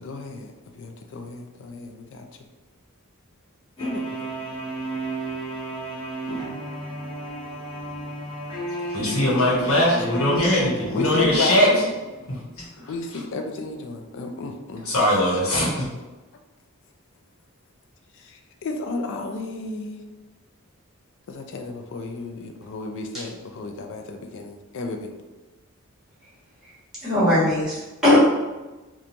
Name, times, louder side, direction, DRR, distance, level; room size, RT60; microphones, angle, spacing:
voice 1, 0.0-2.3 3.8-4.3 6.3-6.6 9.2-10.5 10.9-11.9 12.9-15.4 18.1-20.0 21.3-25.1, left 3 dB, 60° left, 4 dB, 0.4 m, -33 dB
sound 1, 3.8-11.5, right 1 dB, 20° left, 0.7 m, -32 dB
voice 2, 8.7-11.8 12.3-12.9 14.8-15.9, left 1 dB, 80° left, -5 dB, 1.0 m, -21 dB
voice 3, 27.0-28.2, left 1 dB, ahead, -10 dB, 1.2 m, -20 dB
2.9 x 2.2 x 2.5 m, 1.1 s
head